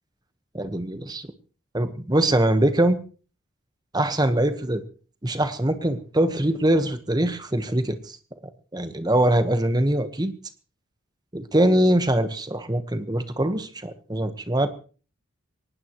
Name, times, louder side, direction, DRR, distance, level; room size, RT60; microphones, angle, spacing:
voice 1, 0.5-1.3 1.7-3.0 3.9-4.8 5.2-8.2 8.7-10.3 11.3-14.7, right 1 dB, 20° right, 9 dB, 1.3 m, -23 dB
23.0 x 19.0 x 3.1 m, 0.39 s
head